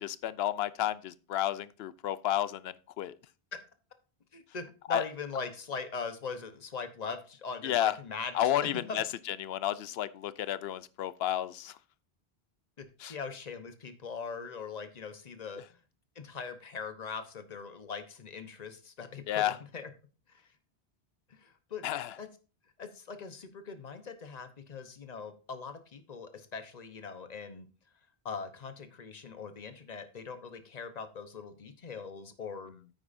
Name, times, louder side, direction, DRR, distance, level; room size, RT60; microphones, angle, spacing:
voice 1, 0.0-3.2 4.9-5.0 7.6-8.0 8.3-11.8 13.0-13.1 19.3-19.6 21.8-22.1, left 12 dB, 75° left, 0.8 m, -31 dB
voice 2, 4.3-8.3 8.9-9.0 12.8-15.8 16.2-19.9 20.3-20.4 21.3-21.9 22.2-22.3 22.8-27.7 28.2-32.7, left 5 dB, 45° left, 1.1 m, -41 dB
9.3 x 8.8 x 2.6 m
omnidirectional pair, 1.0 m